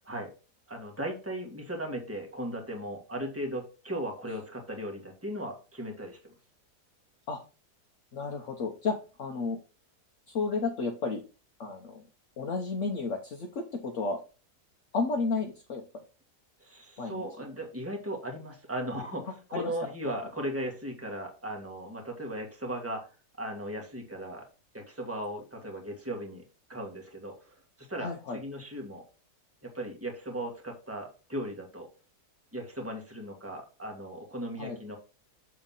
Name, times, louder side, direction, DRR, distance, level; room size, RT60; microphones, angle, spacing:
voice 1, 0.7-6.3 16.6-23.1 23.4-24.5 24.7-26.4 26.7-29.0 29.6-31.9 32.5-35.0, right 1 dB, 10° right, 1 dB, 1.9 m, -37 dB
voice 2, 8.1-9.6 10.3-11.2 11.6-12.0 12.4-14.2 14.9-15.8 17.0-17.2 19.5-19.7 20.0-20.1 28.0-28.4 34.6-34.8, left 4 dB, 55° left, 1 dB, 1.2 m, -32 dB
7.2 x 3.8 x 5.6 m, 0.33 s
omnidirectional pair, 1.7 m